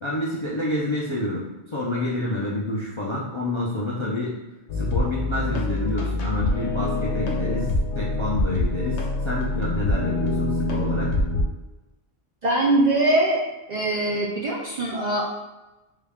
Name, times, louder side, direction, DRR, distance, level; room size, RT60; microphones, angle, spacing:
voice 1, 0.0-4.4 4.7-11.1, left 1 dB, 40° left, -6 dB, 0.4 m, -28 dB
sound 1, 4.7-11.4, left 2 dB, 85° left, 1.0 m, -25 dB
voice 2, 12.4-13.4 13.7-15.2, right 1 dB, 55° right, -3 dB, 0.5 m, -22 dB
3.7 x 2.3 x 3.5 m, 1.0 s
omnidirectional pair, 1.2 m